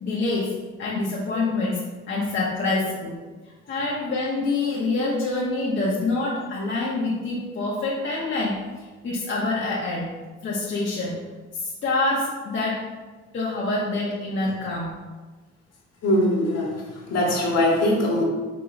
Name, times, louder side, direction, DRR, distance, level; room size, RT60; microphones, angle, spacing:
voice 1, 0.0-3.2 3.4-10.1 10.4-11.2 11.5-12.9 13.3-14.9, left 2 dB, 40° left, -5 dB, 0.7 m, -26 dB
voice 2, 16.0-18.2, left 1 dB, 60° left, -3 dB, 1.1 m, -22 dB
5.0 x 2.7 x 2.4 m, 1.3 s
cardioid pair, 90°, 30 cm